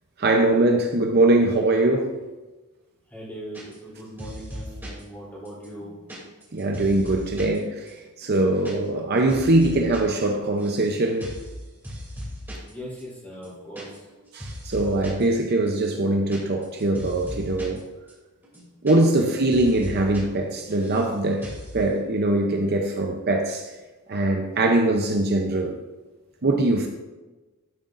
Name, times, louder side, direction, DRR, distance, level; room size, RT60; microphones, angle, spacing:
voice 1, 0.2-2.2 6.5-7.8 8.2-11.3 14.3-17.8 18.8-21.5 21.7-23.7 24.1-25.8 26.4-26.9, right 2 dB, 45° right, 3 dB, 0.7 m, -22 dB
voice 2, 3.1-5.9 12.7-14.0 19.1-19.3 25.1-25.3, equal, 10° left, -6 dB, 3.2 m, -40 dB
sound 1, 3.5-3.9 4.2-5.0 5.5-7.6 7.9-8.0 8.2-8.7 9.0-10.0 10.3-10.9 11.2-11.5 11.8-12.7 13.0-13.1 13.3-14.1 14.4-15.2 15.7-17.8 18.1-18.2 18.4-19.2 19.5-20.2 20.5-21.1 21.4-21.7, equal, 10° right, 2.8 m, -38 dB
11.5 x 8.0 x 2.6 m, 1.2 s
head